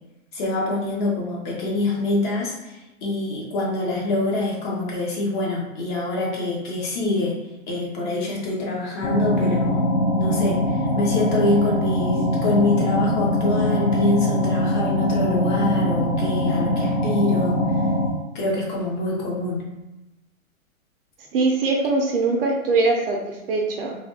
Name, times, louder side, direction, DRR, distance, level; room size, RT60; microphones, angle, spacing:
voice 1, 0.3-7.4 7.7-17.6 18.3-19.7, left 2 dB, 35° left, -3 dB, 0.9 m, -25 dB
sound 1, 9.0-18.1, equal, 75° left, 1.2 m, -22 dB
voice 2, 21.3-23.9, right 3 dB, 45° right, 1 dB, 0.5 m, -22 dB
3.3 x 2.3 x 2.6 m, 0.99 s
hypercardioid pair, 150°, 41 cm